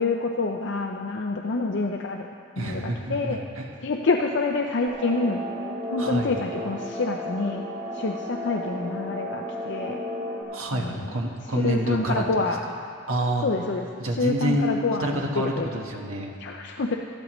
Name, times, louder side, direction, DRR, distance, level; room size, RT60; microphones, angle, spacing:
voice 1, 0.0-2.3 2.6-3.4 3.8-5.4 5.9-7.6 7.9-10.0 10.7-11.2 11.5-12.6 13.4-15.8 16.4-17.0, left 3 dB, 55° left, 2 dB, 0.5 m, -27 dB
voice 2, 2.6-3.6 6.0-6.3 10.5-12.2 13.1-13.4 14.0-16.3, right 1 dB, 85° right, 1 dB, 1.3 m, -28 dB
sound 1, 4.9-10.4, left 1 dB, 40° right, 2.1 m, -33 dB
14.5 x 13.0 x 3.1 m, 2.3 s
head